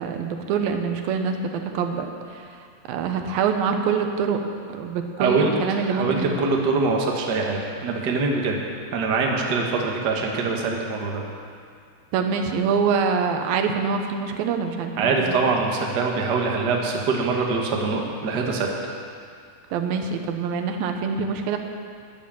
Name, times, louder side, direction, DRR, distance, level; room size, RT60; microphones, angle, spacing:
voice 1, 0.0-2.5 2.9-4.4 4.8-6.3 12.1-15.3 19.7-21.6, right 6 dB, 85° right, 5 dB, 2.8 m, -25 dB
voice 2, 5.2-5.5 5.8-8.6 8.9-11.2 15.0-18.7, right 4 dB, 50° right, 0 dB, 1.3 m, -23 dB
12.0 x 10.5 x 7.3 m, 2.2 s
omnidirectional pair, 4.0 m